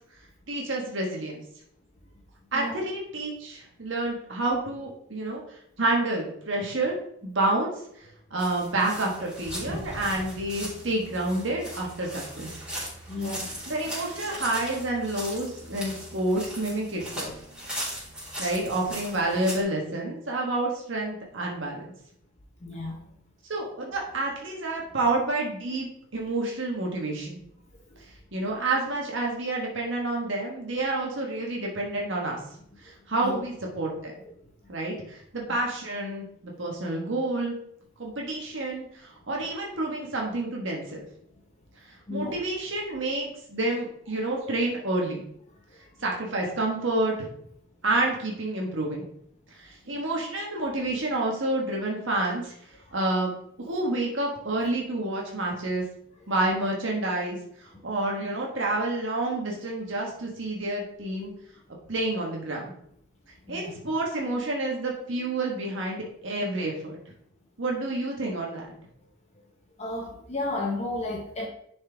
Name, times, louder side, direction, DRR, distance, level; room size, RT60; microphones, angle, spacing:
voice 1, 0.5-1.4 2.5-7.0 7.2-8.0 8.3-12.6 13.7-17.3 18.4-21.9 23.5-25.9 26.1-27.4 28.3-32.4 32.8-34.1 34.7-37.5 38.0-41.0 41.8-45.2 46.0-47.1 47.8-49.0 49.5-52.5 52.9-53.3 53.6-55.8 56.3-61.3 61.9-62.7 63.5-67.0 67.6-68.6, right 2 dB, 70° right, -1 dB, 1.4 m, -29 dB
sound 1, 8.4-19.6, equal, 5° right, 3.1 m, -38 dB
voice 2, 13.1-13.5 22.6-23.0 27.9-28.0 33.2-33.4 36.5-36.7 42.1-42.4 57.7-57.8 63.5-63.8 69.8-71.5, left 2 dB, 35° left, 0 dB, 0.9 m, -33 dB
10.5 x 4.4 x 3.4 m, 0.70 s
head